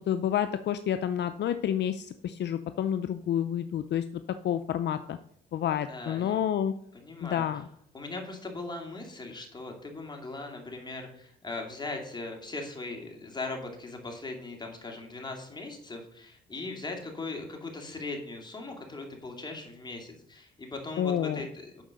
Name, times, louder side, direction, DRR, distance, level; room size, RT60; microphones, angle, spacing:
voice 1, 0.0-4.0 4.4-5.2 5.5-6.7 7.2-7.7 21.0-21.5, left 10 dB, 60° left, 10 dB, 0.5 m, -29 dB
voice 2, 5.9-6.4 6.9-7.5 7.9-21.8, left 3 dB, 20° left, 2 dB, 2.6 m, -39 dB
8.8 x 5.4 x 6.4 m, 0.67 s
cardioid pair, 90°, 20 cm